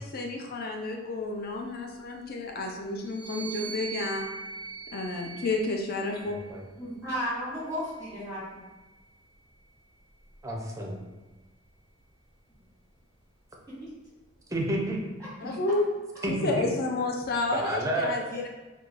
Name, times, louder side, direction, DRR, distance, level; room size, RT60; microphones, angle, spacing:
voice 1, 0.0-4.3 4.9-6.4 15.4-15.8 16.3-18.5, left 2 dB, 50° left, 2 dB, 0.4 m, -31 dB
sound 1, 3.0-6.6 7.4-9.0, right 6 dB, 75° left, 1.2 m, -42 dB
voice 2, 6.3-6.6 10.4-11.0 14.5-15.0 15.4-15.5 16.2-16.7 17.5-18.1, right 1 dB, 15° right, -1 dB, 0.5 m, -30 dB
voice 3, 6.8-8.7 13.8-13.9 17.3-17.4 18.3-18.5, equal, 10° left, -11 dB, 1.2 m, -34 dB
4.4 x 2.3 x 2.4 m, 1.2 s
head